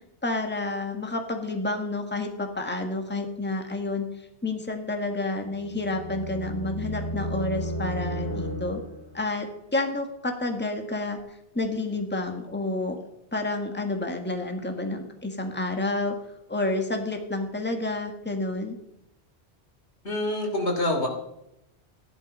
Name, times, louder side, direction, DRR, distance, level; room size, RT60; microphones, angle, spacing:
voice 1, 0.2-4.1 4.4-8.8 9.1-9.5 9.7-11.2 11.6-13.0 13.3-16.1 16.5-18.8, left 2 dB, 10° left, 4 dB, 1.7 m, -29 dB
sound 1, 5.3-9.2, equal, 65° left, 2.9 m, -33 dB
voice 2, 20.0-21.1, left 1 dB, 85° left, 2 dB, 3.1 m, -26 dB
15.0 x 11.0 x 5.4 m, 0.84 s
omnidirectional pair, 1.1 m